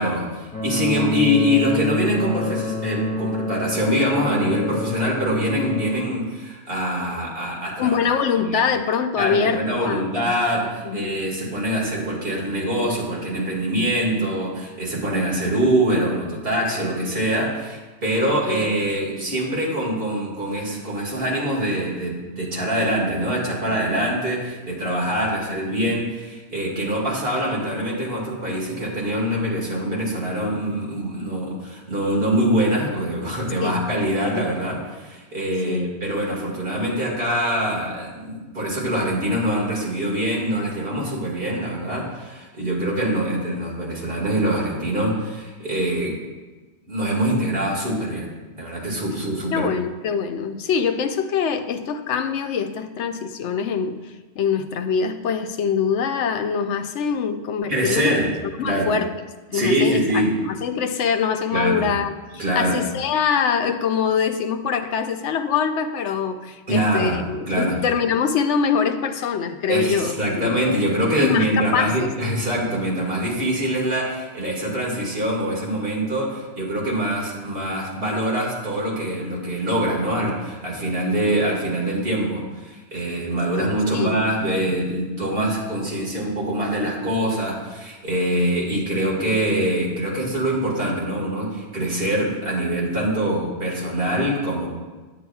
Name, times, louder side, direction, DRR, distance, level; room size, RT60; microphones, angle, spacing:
voice 1, 0.0-8.0 8.4-8.6 9.2-46.2 46.9-48.3 48.5-49.7 57.7-58.3 58.6-58.9 59.5-60.3 61.5-61.8 62.4-62.8 66.7-67.8 69.7-94.7, equal, 55° right, -3 dB, 2.1 m, -24 dB
sound 1, 0.5-5.9, left 1 dB, 35° left, 2.3 m, -27 dB
voice 2, 7.8-10.1 10.8-11.2 18.2-18.8 33.6-33.8 35.7-36.2 49.5-54.0 54.4-58.3 58.6-59.1 59.5-70.5 71.2-72.1 83.5-84.2, left 6 dB, 85° left, 8 dB, 0.9 m, -24 dB
10.0 x 8.4 x 2.3 m, 1.3 s
omnidirectional pair, 1.2 m